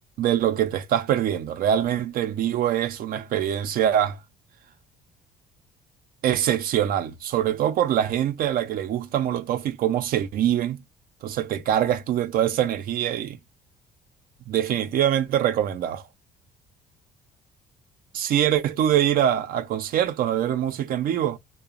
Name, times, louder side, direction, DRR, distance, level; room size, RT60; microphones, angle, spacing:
voice 1, 0.2-4.2 6.2-10.8 11.2-13.4 14.5-16.0 18.1-21.4, right 10 dB, 60° right, 0.4 m, -24 dB
2.8 x 2.1 x 2.3 m
cardioid pair, 110°, 17 cm